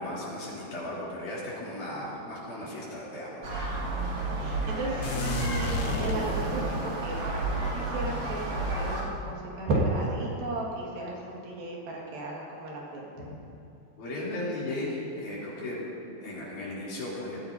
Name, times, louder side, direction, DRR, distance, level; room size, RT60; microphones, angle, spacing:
voice 1, 0.0-3.5 13.2-13.3 14.0-15.8 16.1-17.4, left 1 dB, 55° left, -7 dB, 4.5 m, -36 dB
sound 1, 3.4-9.0, right 2 dB, 50° right, 3.7 m, -31 dB
voice 2, 4.1-8.4 8.8-13.3, right 2 dB, 70° right, -3 dB, 3.5 m, -34 dB
sound 2, 5.0-6.8, left 5 dB, 80° left, 2.7 m, -33 dB
19.5 x 14.5 x 2.7 m, 2.9 s
omnidirectional pair, 4.4 m